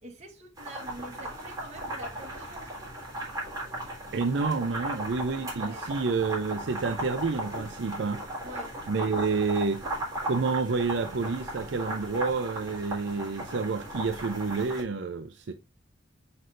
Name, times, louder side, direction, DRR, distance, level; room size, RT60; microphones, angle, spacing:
voice 1, 0.0-2.7 5.6-5.8 8.4-8.7, right 1 dB, 35° right, 2.0 m, -45 dB
sound 1, 0.6-14.8, right 1 dB, 20° right, 3.6 m, -37 dB
voice 2, 4.1-8.2 8.9-9.8 10.3-15.5, right 4 dB, 70° right, 0.5 m, -29 dB
6.4 x 6.0 x 2.5 m
head